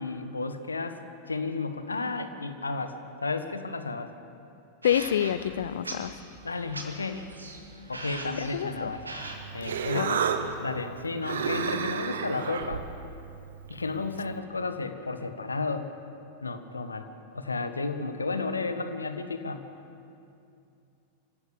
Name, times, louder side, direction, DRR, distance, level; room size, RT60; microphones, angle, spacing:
voice 1, 0.0-4.1 6.4-7.2 7.9-9.0 9.5-10.3 10.6-12.9 13.7-15.9 16.4-17.1 17.3-19.6, left 3 dB, 80° left, 9 dB, 1.3 m, -33 dB
voice 2, 4.8-6.1 8.5-8.9 9.9-10.2, left 10 dB, 60° left, 16 dB, 0.6 m, -27 dB
sound 1, 4.8-10.5, right 2 dB, 80° right, 2.1 m, -42 dB
Human voice, 9.2-14.4, right 7 dB, 65° right, 1.1 m, -33 dB
26.0 x 15.5 x 7.0 m, 2.6 s
figure-of-eight pair, 90°, 0 cm